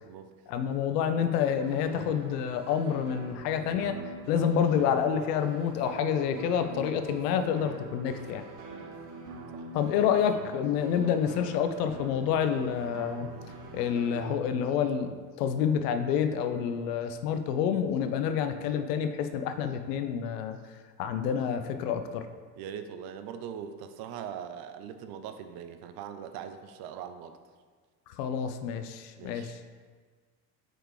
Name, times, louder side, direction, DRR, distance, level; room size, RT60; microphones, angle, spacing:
voice 1, 0.5-4.0 4.3-8.4 9.7-13.3 13.7-15.1 15.4-20.6 21.0-22.3 28.2-29.6, left 8 dB, 70° left, 9 dB, 0.7 m, -28 dB
sound 1, 1.6-14.4, right 2 dB, 70° right, 1.0 m, -44 dB
voice 2, 22.6-27.4 29.2-29.6, right 8 dB, 50° right, 9 dB, 0.6 m, -41 dB
4.8 x 4.5 x 4.9 m, 1.5 s
hypercardioid pair, 70°, 50 cm